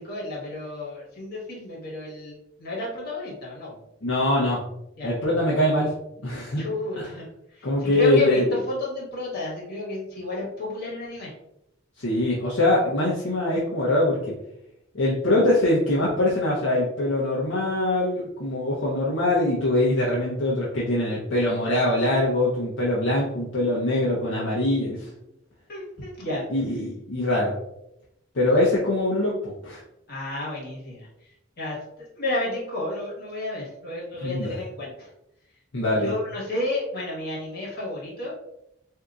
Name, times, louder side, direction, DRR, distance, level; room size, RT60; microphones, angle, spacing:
voice 1, 0.0-2.3 2.6-3.7 5.0-5.1 6.6-7.3 7.5-11.3 25.7-26.4 30.1-31.1 31.6-31.8 32.1-35.1 36.0-38.3, left 2 dB, 55° left, -5 dB, 1.4 m, -31 dB
voice 2, 4.0-4.6 5.0-5.9 6.2-6.6 7.0-7.1 7.6-8.5 12.0-14.2 14.9-25.1 26.5-27.5 28.3-29.8 34.2-34.6 35.7-36.1, left 1 dB, 70° left, -6 dB, 0.7 m, -23 dB
3.7 x 2.7 x 2.3 m, 0.82 s
head